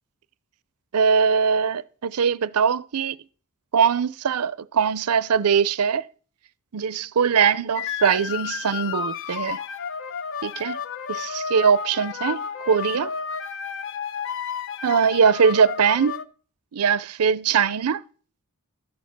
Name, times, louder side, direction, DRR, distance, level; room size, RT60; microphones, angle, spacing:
voice 1, 0.9-3.2 3.7-6.0 6.7-9.6 10.4-10.8 11.1-13.1 14.8-16.2 16.7-18.0, right 6 dB, 80° right, 0.5 m, -21 dB
sound 1, 7.8-16.3, left 7 dB, 60° left, 0.7 m, -32 dB
13.0 x 9.4 x 5.9 m
head